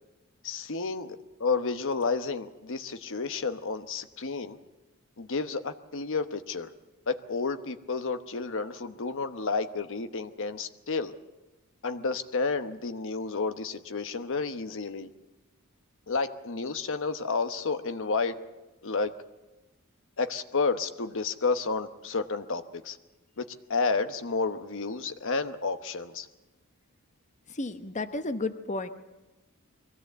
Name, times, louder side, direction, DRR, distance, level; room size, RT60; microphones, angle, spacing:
voice 1, 0.4-4.6 5.2-6.7 7.1-11.1 11.8-15.1 16.1-18.4 18.8-19.1 20.2-23.0 23.4-26.3, left 4 dB, 60° left, 9 dB, 1.1 m, -31 dB
voice 2, 27.5-28.9, left 2 dB, 35° left, 8 dB, 1.0 m, -32 dB
23.0 x 16.5 x 8.1 m, 1.1 s
head